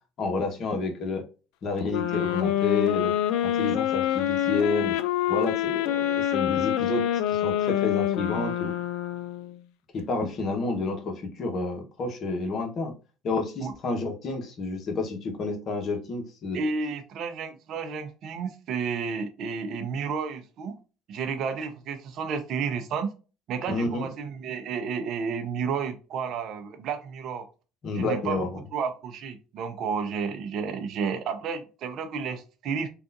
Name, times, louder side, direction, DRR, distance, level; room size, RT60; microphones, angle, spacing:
voice 1, 0.2-1.2 1.6-3.1 3.4-5.0 5.3-8.7 9.9-12.9 13.2-16.6 23.7-24.1 27.8-28.6, left 3 dB, 50° left, 1.0 m, -30 dB
sound 1, 1.9-9.6, left 11 dB, 70° left, 0.3 m, -26 dB
voice 2, 16.5-20.8 21.1-23.1 23.5-27.5 27.9-28.4 28.7-32.9, right 5 dB, 60° right, 0.6 m, -31 dB
3.6 x 2.4 x 2.6 m
hypercardioid pair, 70°, 0 cm